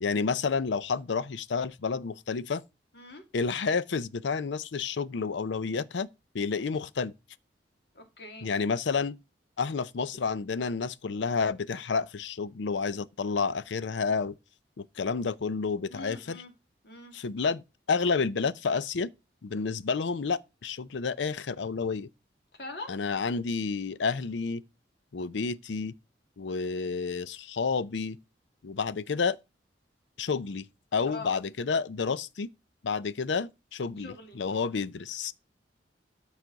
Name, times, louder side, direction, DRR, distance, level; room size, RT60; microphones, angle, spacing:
voice 1, 0.0-2.6 3.3-6.1 6.3-7.1 8.4-9.2 9.6-14.3 14.8-16.4 17.1-19.1 19.4-22.1 22.9-24.6 25.1-25.9 26.4-28.2 28.6-29.4 30.2-30.7 30.9-32.5 32.8-35.3, left 5 dB, 85° left, 0.5 m, -30 dB
voice 2, 7.9-8.5 15.9-16.5 16.8-17.1 22.5-22.9 31.1-31.4 34.0-34.4, left 2 dB, 65° left, 2.3 m, -42 dB
13.0 x 4.9 x 3.9 m
head